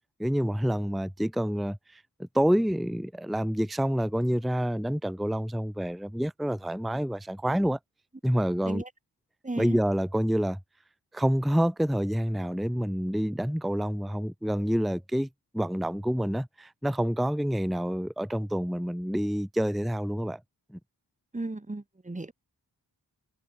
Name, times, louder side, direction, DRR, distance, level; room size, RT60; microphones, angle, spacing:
voice 1, 0.2-7.8 8.2-8.8 9.6-10.6 11.1-15.3 15.5-20.4 20.7-20.8, equal, ahead, 0.8 m, -28 dB
voice 2, 9.4-9.8 21.3-22.3, right 2 dB, 15° right, 1.8 m, -35 dB
wide cardioid pair, 105°, 42 cm